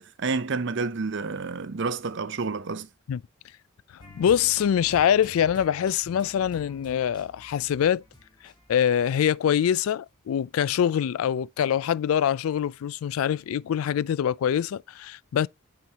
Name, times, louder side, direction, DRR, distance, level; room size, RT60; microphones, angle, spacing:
voice 1, 0.0-2.9, right 4 dB, 55° right, 0.6 m, -29 dB
sound 1, 4.0-9.8 10.1-10.2, left 1 dB, 20° left, 1.4 m, -49 dB
voice 2, 4.2-8.0 8.4-15.5, left 9 dB, 75° left, 0.3 m, -24 dB
9.1 x 4.7 x 2.8 m
head